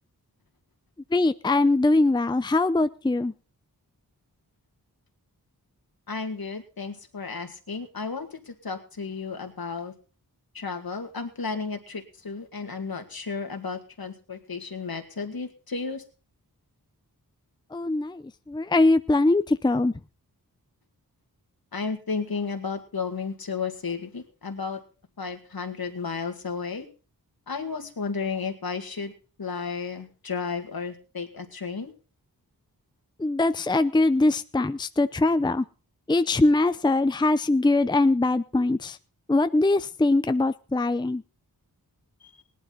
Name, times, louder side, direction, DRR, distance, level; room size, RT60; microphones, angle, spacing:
voice 1, 1.1-3.3 17.7-19.9 33.2-35.6 36.1-39.0 39.3-41.2, left 2 dB, 10° left, 12 dB, 0.6 m, -22 dB
voice 2, 6.1-9.9 10.5-16.0 21.7-24.8 25.2-26.9 27.5-29.1 29.4-31.9 42.4-42.5, left 5 dB, 65° left, 6 dB, 2.2 m, -33 dB
18.0 x 11.5 x 4.1 m, 0.36 s
cardioid pair, 45°, 38 cm